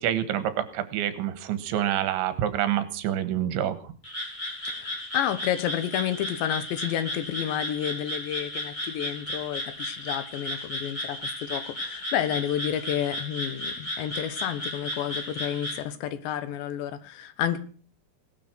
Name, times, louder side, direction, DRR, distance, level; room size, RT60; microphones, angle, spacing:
voice 1, 0.0-3.8, right 11 dB, 80° right, 12 dB, 3.8 m, -27 dB
Frog, 4.0-15.8, left 1 dB, 10° left, 6.1 m, -34 dB
voice 2, 4.6-17.6, left 10 dB, 75° left, 13 dB, 3.4 m, -30 dB
18.5 x 12.5 x 6.1 m, 0.41 s
omnidirectional pair, 5.3 m